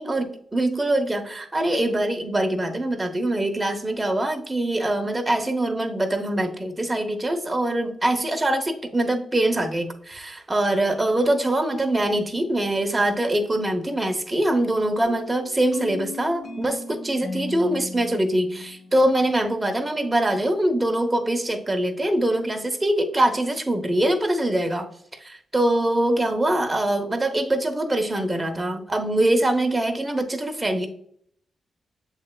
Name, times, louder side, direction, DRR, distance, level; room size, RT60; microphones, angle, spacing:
voice 1, 0.0-24.9 25.2-30.9, right 1 dB, 25° right, 6 dB, 0.9 m, -23 dB
sound 1, 15.0-19.7, left 3 dB, 60° left, 1.1 m, -37 dB
7.1 x 3.2 x 2.2 m, 0.65 s
supercardioid pair, 50°, 0 cm